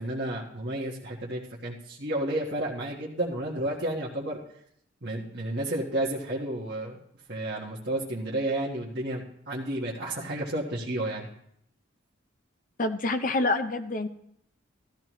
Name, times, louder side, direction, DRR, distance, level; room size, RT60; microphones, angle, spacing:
voice 1, 0.0-4.4 5.0-7.0 7.3-11.3, right 1 dB, 55° right, -4 dB, 1.5 m, -31 dB
voice 2, 12.8-14.1, left 2 dB, 40° left, 8 dB, 0.6 m, -27 dB
14.0 x 13.0 x 3.1 m, 0.71 s
head